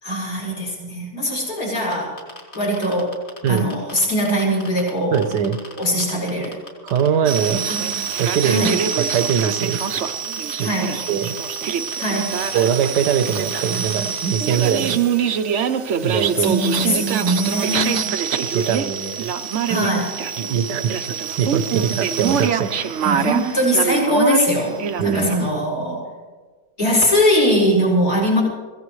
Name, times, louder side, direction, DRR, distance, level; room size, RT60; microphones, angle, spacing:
voice 1, 0.0-2.1 2.5-3.1 3.5-5.2 5.8-6.5 7.7-8.7 10.6-11.0 12.0-12.4 16.4-18.1 19.7-20.2 23.0-24.8 25.0-26.0 26.8-28.4, equal, 60° left, -3 dB, 5.5 m, -21 dB
sound 1, 1.8-4.9 5.1-7.1 7.4-14.1, left 2 dB, 40° left, 3.1 m, -37 dB
voice 2, 5.1-5.6 6.8-7.7 8.2-9.8 10.6-10.7 11.1-11.4 12.5-15.0 16.0-16.6 18.5-19.3 19.7-19.8 20.4-22.8 25.0-25.3, right 8 dB, 80° right, 10 dB, 1.5 m, -22 dB
sound 2, 7.2-25.5, right 7 dB, 55° right, 0.9 m, -24 dB
24.0 x 16.5 x 3.2 m, 1.4 s
omnidirectional pair, 1.8 m